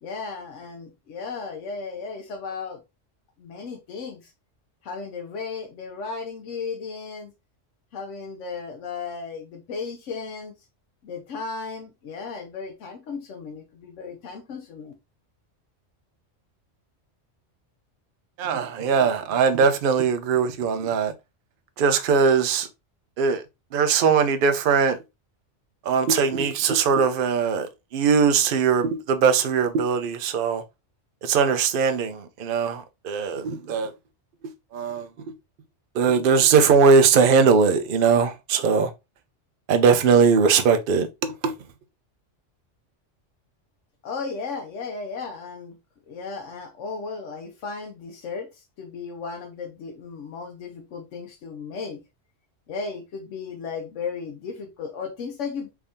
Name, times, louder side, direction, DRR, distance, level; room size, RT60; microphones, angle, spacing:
voice 1, 0.0-2.8 3.4-4.3 4.8-7.3 7.9-10.5 11.0-14.9 44.0-45.8 46.1-52.0 52.7-55.7, left 5 dB, 85° left, 1.0 m, -35 dB
voice 2, 18.4-21.1 21.8-22.7 23.2-23.4 23.7-25.0 25.9-30.6 31.2-33.9 34.7-35.1 36.0-38.9 39.7-41.1 41.4-41.5, right 5 dB, 55° right, 0.7 m, -20 dB
3.5 x 2.7 x 3.4 m
omnidirectional pair, 1.2 m